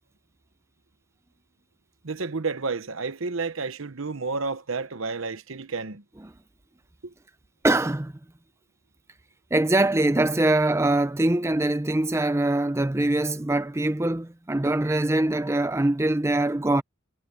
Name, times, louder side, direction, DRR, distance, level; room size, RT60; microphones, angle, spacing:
voice 1, 2.0-6.0 7.0-7.1, right 4 dB, 70° right, 1.0 m, -31 dB
voice 2, 7.6-8.1 9.5-16.8, right 2 dB, 10° right, 0.5 m, -23 dB
head